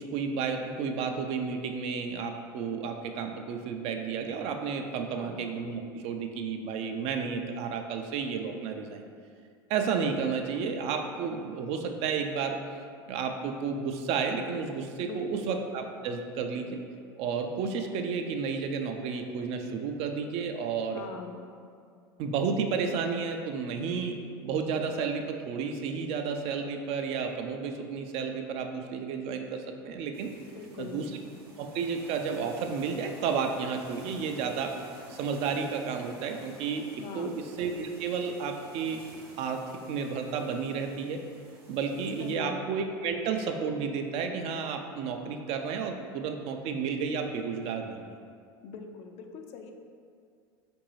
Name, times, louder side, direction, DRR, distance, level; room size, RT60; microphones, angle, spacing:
voice 1, 0.0-9.0 9.7-12.6 13.1-16.8 17.2-21.0 22.2-24.2 24.4-30.3 30.8-31.0 31.6-34.7 35.1-39.0 39.4-39.6 39.9-41.2 41.7-48.1, right 5 dB, 55° right, 5 dB, 0.4 m, -32 dB
voice 2, 5.1-5.5 15.0-15.6 20.9-21.5 30.5-31.1 37.0-37.4 42.2-42.6 48.6-49.7, left 5 dB, 50° left, 5 dB, 0.4 m, -42 dB
sound 1, 30.1-42.4, right 1 dB, 80° right, 0.8 m, -52 dB
3.8 x 2.6 x 3.0 m, 2.3 s
hypercardioid pair, 85°, 13 cm